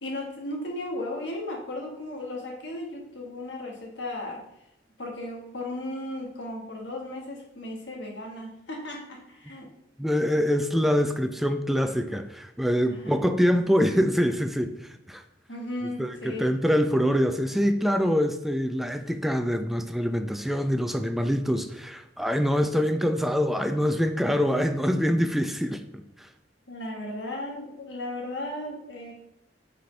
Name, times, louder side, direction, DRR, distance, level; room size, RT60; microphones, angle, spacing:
voice 1, 0.0-4.4 5.0-9.6 13.0-13.2 15.5-16.5 26.7-29.1, left 1 dB, 80° left, 0 dB, 1.4 m, -35 dB
voice 2, 10.0-15.2 16.0-25.8 26.2-26.3, equal, ahead, 7 dB, 0.3 m, -25 dB
7.8 x 4.1 x 3.2 m, 0.84 s
head